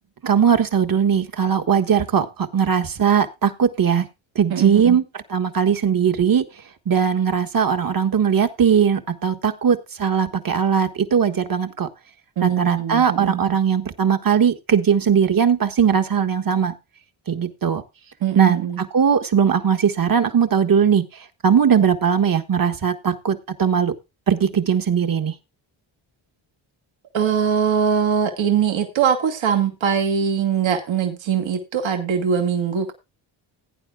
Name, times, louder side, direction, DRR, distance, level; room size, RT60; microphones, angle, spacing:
voice 1, 0.2-4.1 4.3-5.0 5.3-6.4 6.9-11.9 12.4-16.7 17.3-17.8 18.3-21.1 21.4-23.9 24.3-25.3, right 7 dB, 45° right, 8 dB, 1.5 m, -19 dB
voice 2, 4.5-5.0 12.4-13.4 18.2-18.8 27.1-32.9, right 7 dB, 70° right, 5 dB, 1.9 m, -22 dB
17.0 x 9.2 x 2.4 m, 0.23 s
cardioid pair, 70°, 48 cm